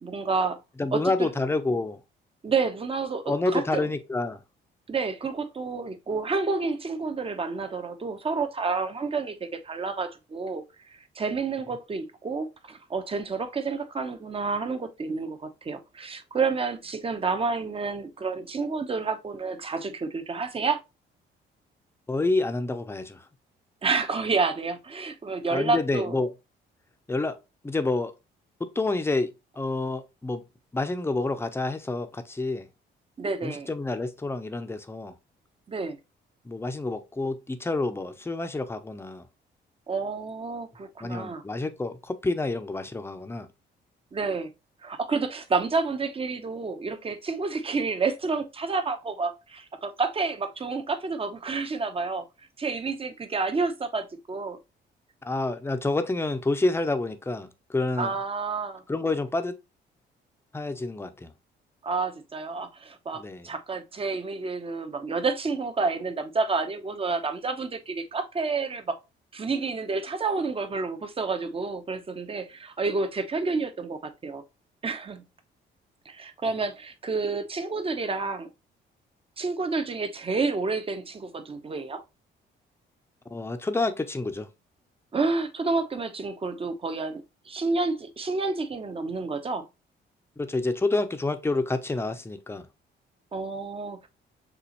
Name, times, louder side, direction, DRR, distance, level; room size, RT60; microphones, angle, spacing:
voice 1, 0.0-0.6 0.9-1.3 2.4-3.9 4.9-20.8 23.8-26.2 33.2-33.7 35.7-36.0 39.9-41.4 44.1-44.5 44.8-52.3 52.6-54.6 58.0-58.8 61.8-69.0 69.3-74.4 74.8-75.2 76.1-78.5 79.4-82.0 85.1-89.7 93.3-94.1, right 4 dB, 30° right, 0.8 m, -29 dB
voice 2, 0.8-2.0 3.3-4.4 22.1-23.2 25.5-26.3 27.1-27.4 27.6-28.1 28.6-30.4 30.7-32.7 33.4-35.1 36.4-39.2 41.0-43.5 55.2-58.1 58.9-59.6 60.5-61.3 63.1-63.5 83.3-84.5 90.4-92.7, left 2 dB, 10° left, 0.6 m, -28 dB
6.7 x 2.5 x 2.9 m
cardioid pair, 90°, 20 cm